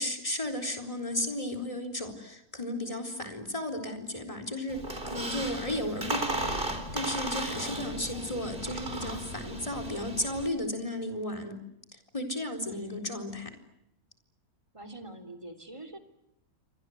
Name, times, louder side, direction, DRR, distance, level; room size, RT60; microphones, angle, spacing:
voice 1, 0.0-6.6 6.9-11.6 11.9-13.5, left 1 dB, 20° left, 8 dB, 4.2 m, -34 dB
Squeak, 4.7-10.5, right 2 dB, 35° right, 4.0 m, -35 dB
voice 2, 7.5-8.4 12.7-13.2 14.7-16.0, right 1 dB, 20° right, 4 dB, 3.3 m, -46 dB
29.5 x 25.0 x 8.0 m, 0.81 s
omnidirectional pair, 1.5 m